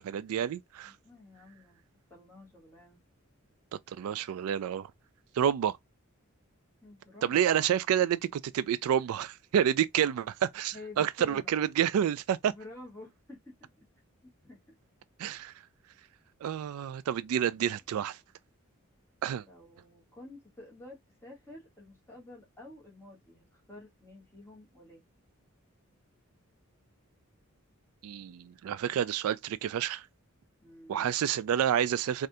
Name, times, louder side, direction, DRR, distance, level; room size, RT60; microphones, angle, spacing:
voice 1, 0.0-0.9 3.9-4.9 5.3-5.8 7.2-12.5 15.2-15.5 16.4-18.2 19.2-19.4 28.0-30.1 30.9-32.3, right 9 dB, 80° right, 0.3 m, -29 dB
voice 2, 0.8-1.8 2.1-3.0 6.8-7.6 10.0-10.2 10.7-11.5 12.5-13.9 14.4-14.7 17.6-17.8 19.4-25.0 30.6-31.1, left 2 dB, 10° left, 1.3 m, -50 dB
3.3 x 2.5 x 2.6 m
head